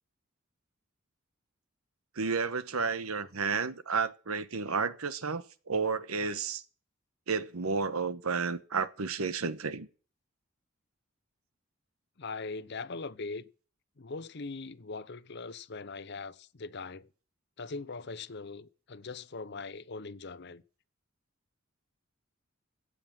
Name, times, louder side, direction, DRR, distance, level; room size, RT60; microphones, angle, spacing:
voice 1, 2.2-6.6 7.3-9.9, right 5 dB, 90° right, 1.1 m, -32 dB
voice 2, 12.2-13.5 14.0-17.1 17.6-20.6, left 4 dB, 50° left, 0.7 m, -41 dB
16.5 x 7.7 x 7.5 m
head